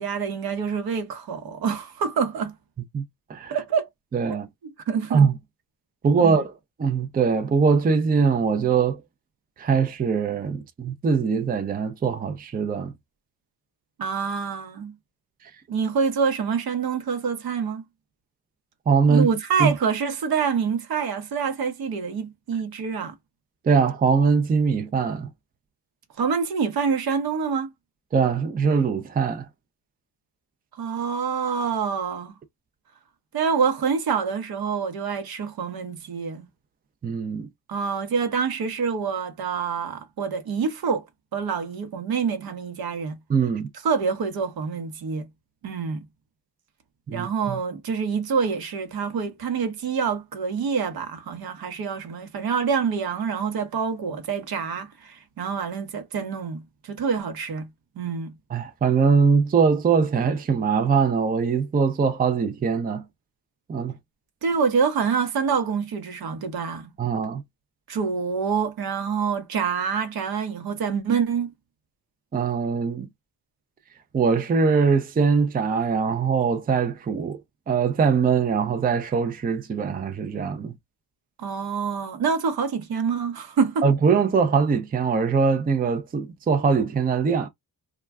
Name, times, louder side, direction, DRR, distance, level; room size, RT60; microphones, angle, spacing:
voice 1, 0.0-2.5 3.5-3.9 4.3-4.4 4.9-5.3 6.2-6.4 14.0-14.9 15.7-17.8 19.1-23.1 26.2-27.7 30.7-32.3 33.3-36.5 37.7-41.0 41.3-43.1 43.8-45.3 45.6-46.0 47.1-57.7 58.0-58.3 64.4-66.9 67.9-71.5 81.4-83.8, right 6 dB, 65° right, 0.9 m, -26 dB
voice 2, 4.1-4.5 5.1-5.4 6.0-6.5 6.8-9.0 9.6-12.9 18.9-19.3 19.6-19.7 23.6-25.3 28.1-29.5 37.0-37.5 43.3-43.7 47.1-47.6 58.5-63.0 63.7-64.0 67.0-67.4 72.3-73.1 74.1-77.4 77.7-80.7 83.8-87.5, right 5 dB, 25° right, 0.5 m, -22 dB
2.3 x 2.2 x 3.4 m
cardioid pair, 65°, 39 cm